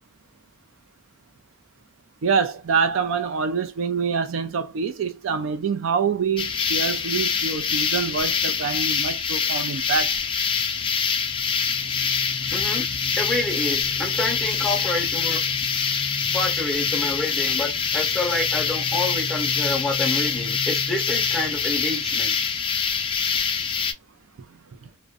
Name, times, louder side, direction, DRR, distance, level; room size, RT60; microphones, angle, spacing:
voice 1, 2.2-10.2 24.8-24.9, right 5 dB, 70° right, 0.4 m, -25 dB
sound 1, 6.4-23.9, left 6 dB, 25° left, 0.3 m, -25 dB
voice 2, 12.5-12.8 13.2-15.4 16.3-22.3, left 2 dB, ahead, 0.8 m, -28 dB
2.4 x 2.1 x 2.4 m
head